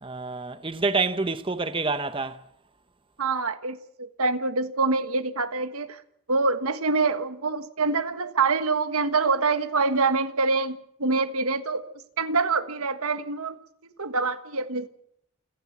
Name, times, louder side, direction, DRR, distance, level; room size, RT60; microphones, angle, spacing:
voice 1, 0.0-2.4, right 3 dB, 25° right, 0.8 m, -27 dB
voice 2, 3.2-6.0 6.3-11.8 12.2-13.6 14.0-14.9, right 4 dB, 80° right, 1.5 m, -25 dB
28.5 x 11.0 x 8.4 m
head